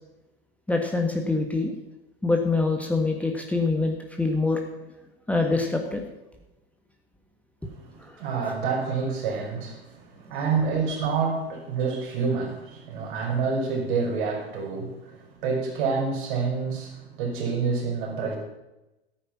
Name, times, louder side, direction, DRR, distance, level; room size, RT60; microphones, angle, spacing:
voice 1, 0.7-1.7 2.2-4.6 5.3-6.0 8.0-8.3, left 3 dB, 5° left, 2 dB, 1.6 m, -25 dB
voice 2, 7.6-18.4, right 5 dB, 55° right, 0 dB, 5.0 m, -28 dB
15.5 x 9.1 x 6.0 m, 0.99 s
figure-of-eight pair, 85°, 30 cm